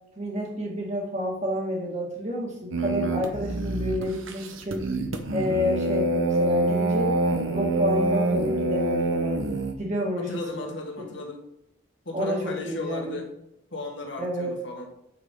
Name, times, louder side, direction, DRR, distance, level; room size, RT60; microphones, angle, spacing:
voice 1, 0.2-4.8 5.3-7.2 7.5-9.5 9.8-10.7 12.1-13.2 14.2-14.6, equal, 35° right, -1 dB, 2.0 m, -29 dB
sound 1, 2.7-9.7, right 2 dB, 80° right, 1.0 m, -26 dB
voice 2, 10.1-11.4 12.1-13.3 13.7-14.9, left 2 dB, 65° left, 1 dB, 1.8 m, -35 dB
8.7 x 6.3 x 3.8 m, 0.84 s
head